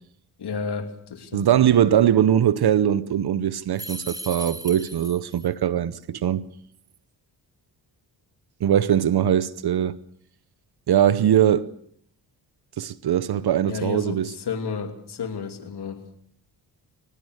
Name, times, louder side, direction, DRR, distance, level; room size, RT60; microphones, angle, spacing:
voice 1, 0.4-1.7 13.7-16.2, left 5 dB, 65° left, 3.0 m, -32 dB
voice 2, 1.3-6.5 8.6-10.0 10.9-11.7 12.8-14.3, right 10 dB, 65° right, 0.9 m, -21 dB
sound 1, 3.8-5.5, right 1 dB, 10° right, 2.1 m, -37 dB
22.5 x 20.0 x 6.5 m
cardioid pair, 80°, 42 cm